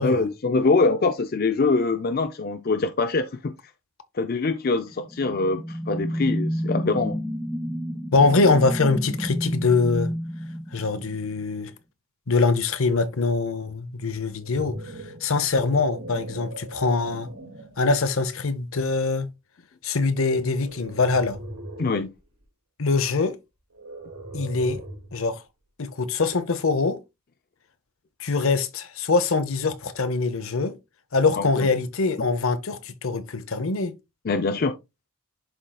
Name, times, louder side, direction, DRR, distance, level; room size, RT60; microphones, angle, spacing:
voice 1, 0.0-3.6 4.1-7.2 21.8-22.1 31.4-31.7 34.2-34.8, left 3 dB, 45° left, 0.4 m, -24 dB
sound 1, 4.9-11.4, equal, ahead, 0.6 m, -30 dB
voice 2, 8.1-10.1 10.7-11.7 12.3-14.9 15.2-17.3 17.8-19.3 19.8-21.4 22.8-23.4 24.3-24.8 25.1-25.4 25.8-27.0 28.2-30.8 31.1-33.9, left 3 dB, 65° left, 0.8 m, -23 dB
sound 2, 14.2-17.8 18.5-18.7 20.5-22.0 23.7-25.2, right 1 dB, 90° right, 3.6 m, -39 dB
11.5 x 3.8 x 2.3 m
head